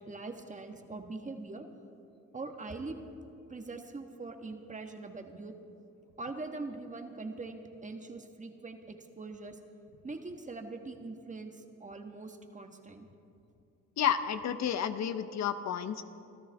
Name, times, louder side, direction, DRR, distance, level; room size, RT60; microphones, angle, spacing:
voice 1, 0.1-1.7 2.3-3.0 3.5-5.5 6.2-9.6 10.0-13.1, right 3 dB, 25° right, 5 dB, 1.5 m, -42 dB
voice 2, 14.0-16.0, left 9 dB, 65° left, 11 dB, 0.8 m, -31 dB
26.0 x 13.0 x 3.5 m, 2.5 s
cardioid pair, 90°, 30 cm